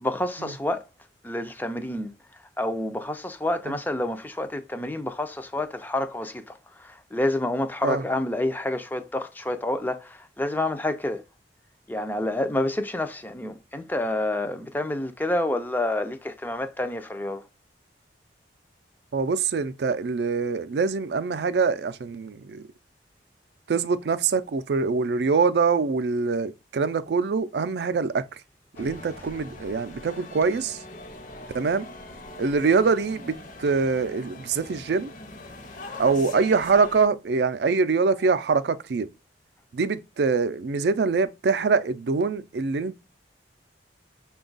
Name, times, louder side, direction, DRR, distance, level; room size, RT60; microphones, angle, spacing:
voice 1, 0.0-0.8 1.2-2.1 2.6-11.2 11.9-17.4, left 1 dB, 10° left, 0.3 m, -28 dB
voice 2, 19.1-22.6 23.7-28.2 28.8-30.8 31.5-31.9 32.4-33.3 33.6-35.1 36.0-39.1 39.7-43.0, right 4 dB, 65° right, 0.4 m, -24 dB
sound 1, 28.7-37.1, left 2 dB, 45° left, 0.7 m, -42 dB
5.9 x 2.3 x 3.8 m
head